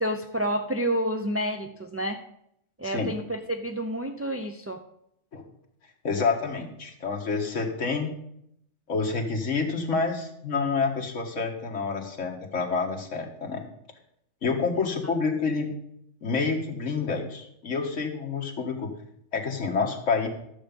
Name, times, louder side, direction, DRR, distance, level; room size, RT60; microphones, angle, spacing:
voice 1, 0.0-2.2 2.8-4.8 14.7-15.1, right 1 dB, 25° right, 5 dB, 0.3 m, -29 dB
voice 2, 6.0-8.1 8.9-13.6 14.4-15.8 16.2-18.9 19.3-20.3, left 4 dB, 75° left, 2 dB, 1.9 m, -28 dB
12.5 x 7.0 x 5.2 m, 0.74 s
omnidirectional pair, 1.3 m